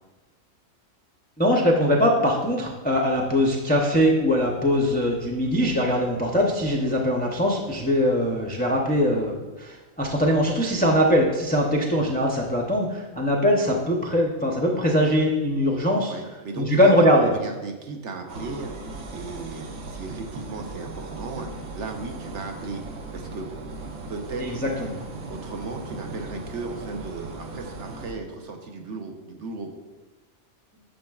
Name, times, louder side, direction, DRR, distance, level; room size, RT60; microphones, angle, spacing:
voice 1, 1.4-16.1 16.6-17.3 24.4-24.9, equal, 15° left, -2 dB, 0.4 m, -22 dB
voice 2, 16.1-22.8 23.1-23.5 24.1-25.0 25.3-29.7, right 3 dB, 65° right, 3 dB, 1.1 m, -36 dB
cosmocaixa sand, 18.3-28.1, right 3 dB, 80° right, 1.2 m, -38 dB
9.0 x 6.7 x 2.4 m, 1.2 s
omnidirectional pair, 1.4 m